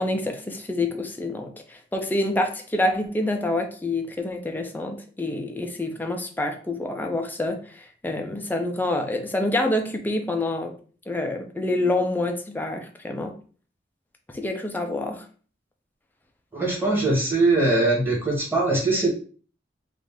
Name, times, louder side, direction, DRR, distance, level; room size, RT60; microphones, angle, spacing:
voice 1, 0.0-10.7 11.1-13.4 14.3-15.2, left 2 dB, 10° left, 4 dB, 0.5 m, -27 dB
voice 2, 16.5-19.1, right 2 dB, 15° right, -4 dB, 1.4 m, -21 dB
3.1 x 2.5 x 3.6 m, 0.40 s
head